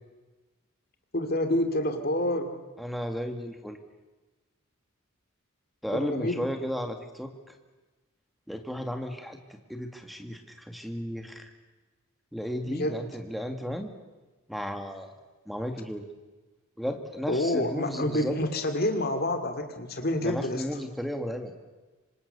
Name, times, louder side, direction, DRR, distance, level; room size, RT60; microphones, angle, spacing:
voice 1, 1.1-2.5 5.9-6.4 12.6-13.0 17.3-20.6, left 1 dB, 45° left, 7 dB, 2.5 m, -28 dB
voice 2, 2.8-3.8 5.8-7.3 8.5-9.4 9.7-11.5 12.3-13.9 14.5-15.1 15.5-16.0 16.8-18.3 20.2-21.5, equal, ahead, 5 dB, 2.1 m, -34 dB
26.0 x 26.0 x 6.9 m, 1.2 s
head